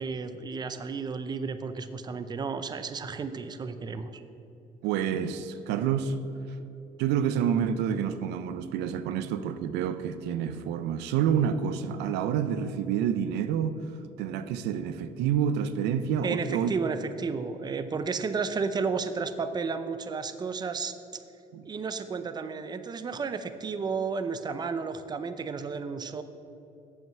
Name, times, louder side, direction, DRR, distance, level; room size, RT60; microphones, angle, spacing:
voice 1, 0.0-4.2 16.2-21.2 21.7-26.2, right 5 dB, 25° right, 10 dB, 0.5 m, -32 dB
voice 2, 4.8-6.2 7.0-13.8 14.2-16.8 21.5-21.6, right 8 dB, 90° right, 12 dB, 0.5 m, -28 dB
7.5 x 5.7 x 7.5 m, 2.9 s
cardioid pair, 110°, 17 cm